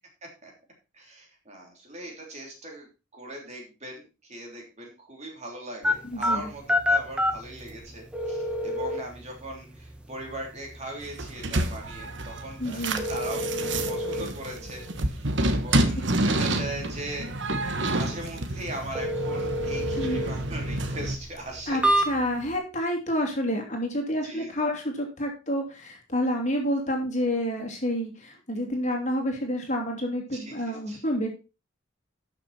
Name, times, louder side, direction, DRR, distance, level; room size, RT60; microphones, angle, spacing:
voice 1, 0.2-0.5 0.9-2.9 3.1-21.9 24.2-24.5 30.4-31.0, right 1 dB, 35° right, 0 dB, 3.4 m, -40 dB
sound 1, 5.8-22.6, left 1 dB, 5° right, 1.3 m, -31 dB
voice 2, 6.0-6.5 12.6-13.0 20.0-20.3 21.7-21.8 22.1-31.3, equal, 35° left, 2 dB, 2.7 m, -29 dB
sound 2, 11.0-21.2, right 1 dB, 60° right, 1.3 m, -29 dB
12.5 x 6.3 x 4.3 m, 0.30 s
head